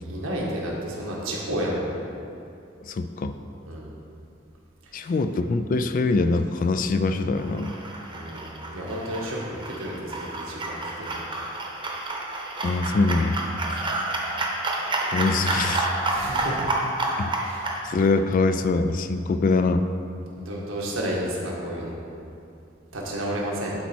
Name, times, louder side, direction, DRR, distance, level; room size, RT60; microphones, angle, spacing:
voice 1, 0.0-1.9 3.7-3.9 5.0-5.1 8.1-11.1 12.9-13.0 13.8-13.9 16.1-16.6 17.4-17.6 20.4-22.0 22.9-23.7, equal, 90° right, -4 dB, 1.6 m, -31 dB
voice 2, 2.8-3.3 4.9-7.7 12.6-13.4 15.1-15.9 17.2-17.3 17.8-19.9, left 3 dB, 45° left, 9 dB, 0.3 m, -23 dB
sound 1, 7.3-17.8, right 2 dB, 25° right, 0.9 m, -29 dB
11.5 x 4.1 x 4.4 m, 2.6 s
head